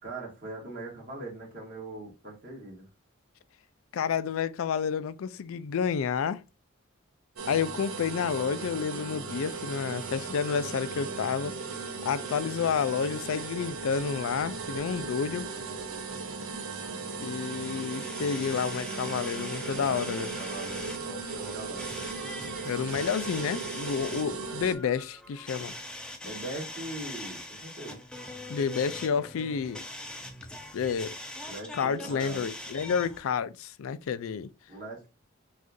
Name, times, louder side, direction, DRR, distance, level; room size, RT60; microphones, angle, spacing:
voice 1, 0.0-2.9 16.9-17.1 19.7-22.2 26.2-28.0 31.5-32.5 34.7-35.1, right 2 dB, 40° right, 2.0 m, -41 dB
voice 2, 3.9-6.4 7.5-11.6 12.0-15.5 17.2-20.3 22.6-25.7 28.5-29.9 30.7-31.1 31.7-34.5, left 6 dB, 80° left, 0.4 m, -30 dB
sound 1, 7.4-24.8, right 4 dB, 85° right, 0.7 m, -37 dB
sound 2, 17.2-33.2, left 1 dB, 5° left, 0.5 m, -43 dB
6.2 x 2.4 x 2.6 m
head